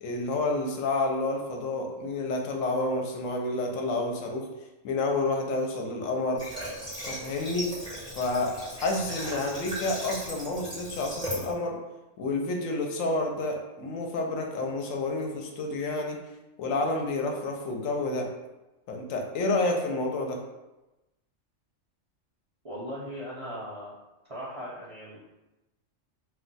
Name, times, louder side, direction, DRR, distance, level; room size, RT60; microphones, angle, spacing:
voice 1, 0.0-4.5 4.8-6.4 7.1-7.7 8.1-11.8 12.2-16.2 16.6-18.3 18.9-20.4, left 2 dB, 80° left, 2 dB, 1.0 m, -29 dB
Water / Water tap faucet, 6.4-11.5, equal, 5° left, 1.1 m, -37 dB
voice 2, 22.6-23.9 24.3-25.2, equal, 50° right, -9 dB, 0.4 m, -38 dB
2.4 x 2.2 x 3.9 m, 1.0 s
omnidirectional pair, 1.4 m